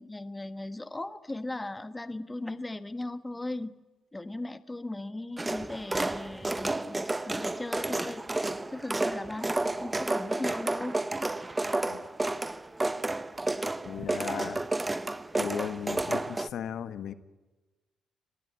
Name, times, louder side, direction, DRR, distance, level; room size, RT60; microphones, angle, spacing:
voice 1, 0.0-3.7 4.1-10.9, left 2 dB, 15° left, 12 dB, 1.3 m, -38 dB
sound 1, 5.4-16.5, right 2 dB, 15° right, 0.9 m, -31 dB
voice 2, 11.8-12.1 13.8-14.7 15.3-17.1, left 9 dB, 70° left, 11 dB, 1.6 m, -36 dB
26.0 x 19.5 x 9.6 m, 1.2 s
cardioid pair, 90°, 0 cm